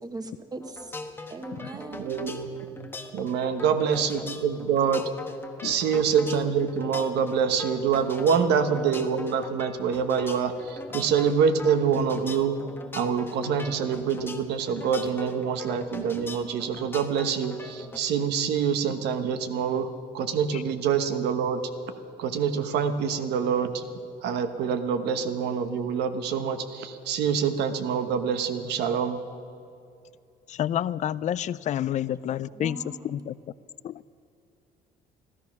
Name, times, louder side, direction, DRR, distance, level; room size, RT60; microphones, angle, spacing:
voice 1, 0.0-0.9 1.3-2.2 32.4-33.2, right 2 dB, 20° right, 7 dB, 1.2 m, -40 dB
sound 1, 0.6-18.0, left 2 dB, 15° left, 1.1 m, -41 dB
voice 2, 1.9-2.9 3.1-5.1 5.6-12.6 12.9-21.7 22.2-23.8 24.2-29.2, right 7 dB, 80° right, 9 dB, 1.1 m, -26 dB
voice 3, 30.5-32.8 33.0-33.3 33.8-33.9, left 11 dB, 45° left, 19 dB, 0.4 m, -29 dB
14.0 x 13.5 x 5.9 m, 2.6 s
cardioid pair, 110°, 17 cm